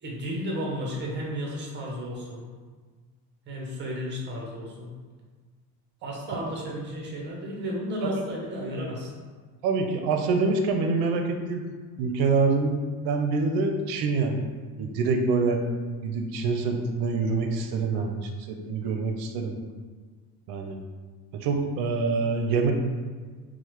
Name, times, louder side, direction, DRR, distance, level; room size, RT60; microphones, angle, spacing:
voice 1, 0.0-2.5 3.5-4.9 6.0-9.1, equal, 30° right, -2 dB, 0.6 m, -33 dB
voice 2, 9.6-11.6 12.0-12.7 13.0-14.5 14.8-15.6 16.0-19.5 20.5-20.8 21.3-22.7, right 4 dB, 75° right, 4 dB, 0.5 m, -26 dB
3.1 x 2.1 x 2.9 m, 1.5 s
cardioid pair, 150°, 39 cm